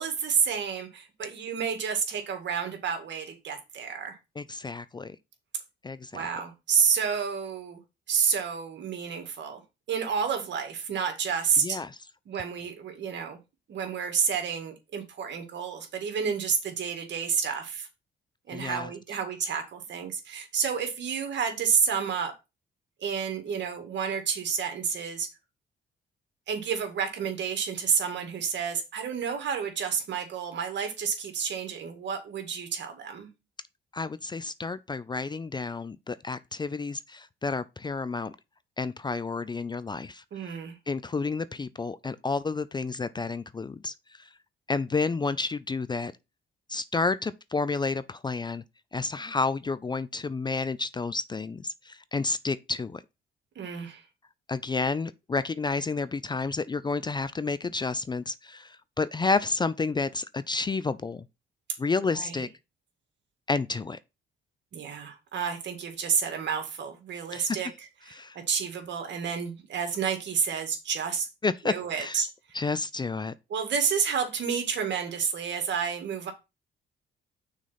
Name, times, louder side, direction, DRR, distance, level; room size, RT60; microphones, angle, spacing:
voice 1, 0.0-4.2 6.1-7.8 8.1-9.6 9.9-11.8 12.3-13.4 13.7-17.9 18.5-22.3 23.0-25.3 26.5-33.3 40.3-40.8 53.6-54.0 62.1-62.5 64.7-67.7 68.0-71.3 71.6-72.3 73.5-76.3, right 6 dB, 65° right, 2.0 m, -30 dB
voice 2, 4.4-5.2 5.8-6.3 11.6-12.0 18.5-18.9 33.9-38.4 38.8-40.2 40.9-43.9 44.2-44.3 44.7-46.1 46.7-48.6 48.9-53.0 54.5-61.2 61.8-62.5 63.5-64.0 67.3-67.6 68.1-68.4 71.4-72.2 72.5-73.3, left 4 dB, 20° left, 0.4 m, -30 dB
6.2 x 4.0 x 5.7 m
cardioid pair, 90°, 20 cm